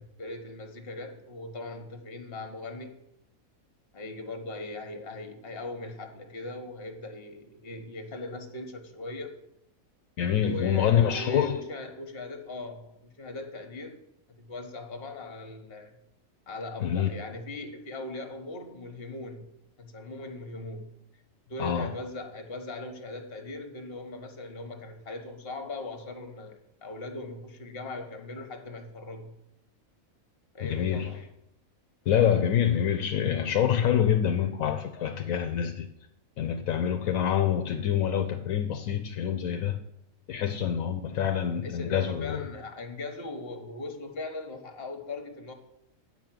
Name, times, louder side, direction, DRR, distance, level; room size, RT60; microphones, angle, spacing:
voice 1, 0.2-2.9 3.9-9.3 10.4-14.0 14.3-15.9 16.5-19.5 19.8-20.9 21.5-29.3 30.5-31.2 35.0-35.2 36.8-37.0 41.6-45.5, left 2 dB, 45° left, 6 dB, 1.3 m, -39 dB
voice 2, 10.2-11.6 16.8-17.1 21.6-21.9 30.6-31.2 32.1-35.9 36.4-39.8 40.3-42.5, left 9 dB, 75° left, 6 dB, 1.0 m, -26 dB
8.8 x 5.2 x 7.6 m, 0.82 s
omnidirectional pair, 1.5 m